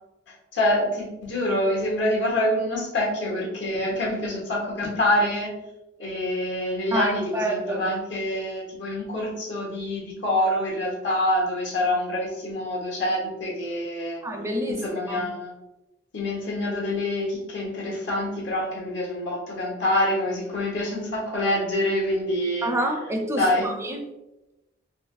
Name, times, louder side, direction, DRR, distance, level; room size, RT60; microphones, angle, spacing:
voice 1, 0.5-5.5 6.0-14.2 14.7-15.5 16.1-22.7 23.4-23.7, left 1 dB, 75° left, -2 dB, 1.0 m, -26 dB
voice 2, 6.9-7.9 14.2-14.8 15.1-15.3 22.6-24.0, right 1 dB, 15° right, 3 dB, 0.4 m, -28 dB
3.2 x 2.9 x 2.4 m, 0.99 s
head